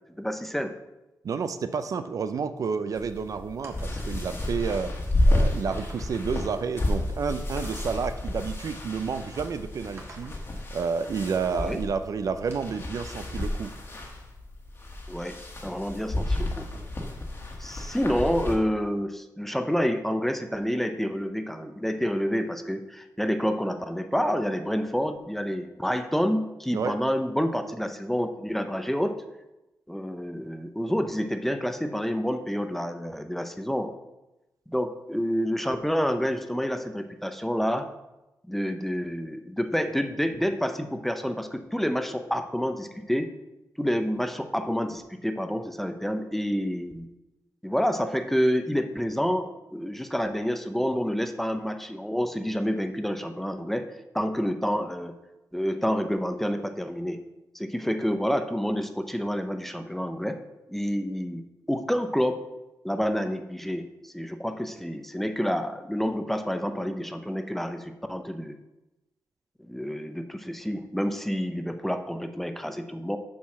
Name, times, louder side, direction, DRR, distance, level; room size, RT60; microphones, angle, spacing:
voice 1, 0.2-0.7 11.5-11.8 15.1-16.7 17.6-29.2 29.9-33.9 34.7-37.9 38.5-43.3 43.8-47.1 47.6-53.9 54.1-55.2 55.5-57.2 57.5-60.4 60.7-61.4 61.7-62.4 62.8-68.6 69.6-73.2, equal, 5° left, 8 dB, 0.6 m, -28 dB
voice 2, 1.2-10.3 10.7-13.7 26.7-27.0, right 5 dB, 60° right, 10 dB, 0.5 m, -30 dB
sound 1, 2.9-18.6, left 1 dB, 40° left, 1.6 m, -31 dB
sound 2, 3.6-4.1 4.9-5.0 5.7-6.2 7.6-8.1 10.0-10.5 12.5-12.9, right 2 dB, 45° right, 1.6 m, -48 dB
7.2 x 4.7 x 5.9 m, 0.99 s
wide cardioid pair, 105°, 7 cm